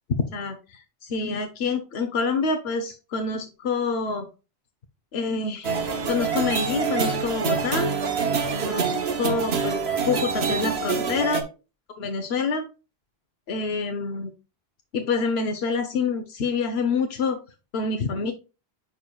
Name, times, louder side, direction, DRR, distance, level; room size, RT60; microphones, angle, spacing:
voice 1, 0.3-4.3 5.1-5.7 6.1-7.9 8.5-9.8 10.1-11.4 12.0-12.7 13.5-14.3 14.9-17.4 17.7-18.3, left 4 dB, 80° left, 6 dB, 1.1 m, -27 dB
sound 1, 5.6-11.4, right 5 dB, 80° right, 1.3 m, -26 dB
9.9 x 4.5 x 2.3 m, 0.30 s
omnidirectional pair, 1.0 m